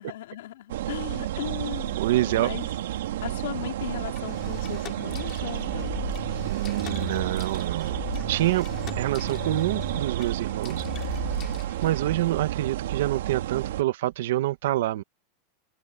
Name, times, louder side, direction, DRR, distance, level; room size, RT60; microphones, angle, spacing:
voice 1, 0.0-2.7 3.2-6.0, left 14 dB, 75° left, 3.6 m, -37 dB
sound 1, 0.7-13.8, right 13 dB, 85° right, 2.2 m, -31 dB
voice 2, 2.0-2.5 6.4-8.0 8.3-8.7 9.0-11.2 11.8-15.0, right 15 dB, 65° right, 1.1 m, -27 dB
sound 2, 4.2-12.2, left 12 dB, 25° left, 2.9 m, -39 dB
supercardioid pair, 175°, 0 cm